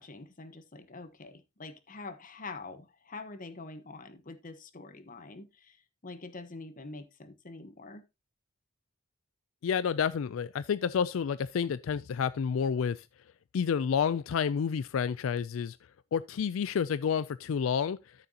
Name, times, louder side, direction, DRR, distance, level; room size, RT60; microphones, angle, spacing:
voice 1, 0.0-5.8 6.0-8.1, left 3 dB, 45° left, 1.1 m, -45 dB
voice 2, 9.6-13.0 13.5-15.8 16.1-18.0, left 7 dB, 85° left, 0.4 m, -29 dB
13.0 x 6.8 x 2.8 m
head